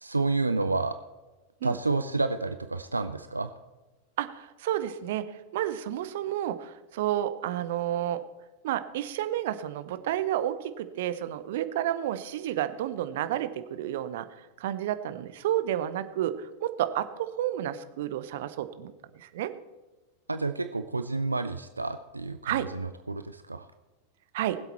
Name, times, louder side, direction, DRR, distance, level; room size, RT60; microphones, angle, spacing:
voice 1, 0.0-0.9 1.6-3.5 20.3-23.7, right 3 dB, 80° right, 10 dB, 0.5 m, -30 dB
voice 2, 4.2-8.2 8.6-14.3 14.6-19.5 22.4-22.7 24.3-24.6, right 12 dB, 55° right, 12 dB, 0.8 m, -31 dB
20.0 x 8.1 x 4.4 m, 1.1 s
figure-of-eight pair, 90°, 0 cm